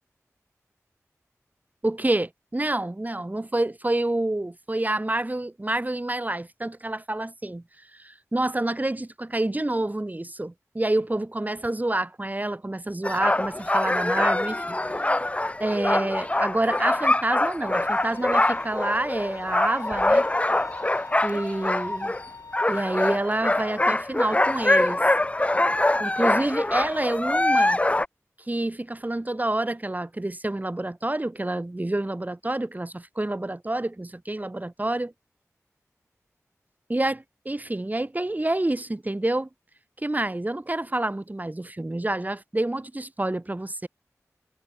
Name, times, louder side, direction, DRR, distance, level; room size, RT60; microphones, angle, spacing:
voice 1, 1.8-7.6 8.0-14.8 15.6-20.3 21.2-22.1 22.7-25.0 26.0-27.8 28.5-35.1 36.9-39.5 40.0-43.9, right 1 dB, 30° right, 5.0 m, -28 dB
sound 1, 13.0-22.2 22.5-28.0, left 1 dB, 25° left, 0.7 m, -24 dB
Bowed string instrument, 17.7-22.8, left 4 dB, 90° left, 3.9 m, -43 dB
wide cardioid pair, 55°, 6 cm